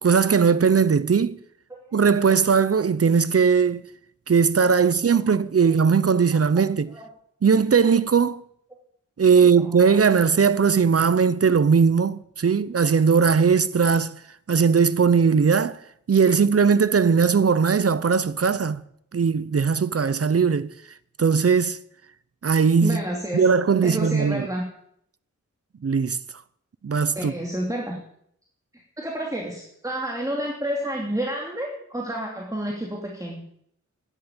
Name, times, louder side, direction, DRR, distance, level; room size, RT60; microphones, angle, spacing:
voice 1, 0.0-1.4 1.9-3.9 4.3-6.9 7.4-8.4 9.2-14.2 14.5-15.8 16.1-18.8 19.1-20.7 21.2-21.8 22.4-23.0 23.3-24.5 25.8-26.2 26.8-27.3, right 6 dB, 50° right, 0.8 m, -19 dB
voice 2, 9.2-10.0 22.8-23.5 23.8-24.7 27.1-28.0 28.7-33.4, right 1 dB, 10° right, 2.9 m, -30 dB
11.0 x 10.5 x 8.9 m
wide cardioid pair, 65°, 31 cm